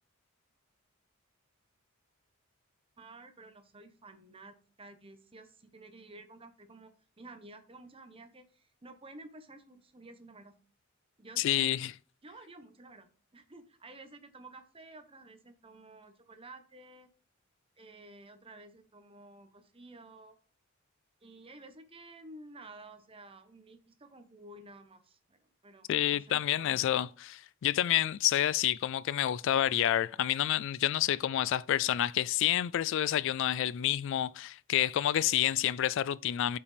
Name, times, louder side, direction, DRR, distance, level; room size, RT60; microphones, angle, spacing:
voice 1, 3.0-6.9 7.2-10.6 11.2-11.7 12.2-17.1 17.8-20.4 21.2-27.1, right 2 dB, 25° right, 1.0 m, -52 dB
voice 2, 11.4-11.9 25.9-36.6, left 12 dB, 60° left, 0.3 m, -29 dB
8.4 x 5.8 x 3.4 m
head